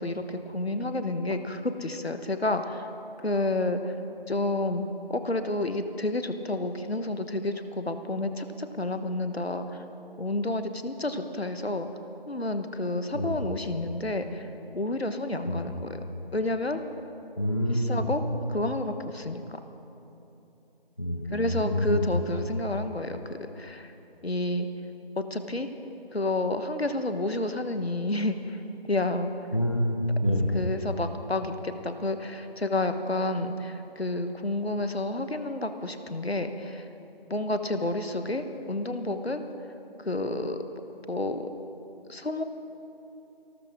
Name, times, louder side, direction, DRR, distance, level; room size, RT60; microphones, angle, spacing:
voice 1, 0.0-2.9 3.2-3.9 4.3-4.8 5.1-9.8 10.2-11.9 12.3-14.5 14.7-16.0 16.3-16.8 17.7-18.2 18.5-19.6 21.3-23.9 24.2-24.7 25.2-25.7 26.1-28.6 28.8-29.3 30.5-36.8 37.3-39.4 40.0-40.6 41.1-41.5 42.1-42.4, left 2 dB, 80° left, 8 dB, 1.3 m, -30 dB
voice 2, 17.4-18.0 21.0-22.2 29.5-30.5, equal, 30° left, 1 dB, 1.0 m, -27 dB
26.5 x 13.5 x 3.6 m, 2.9 s
figure-of-eight pair, 170°, 31 cm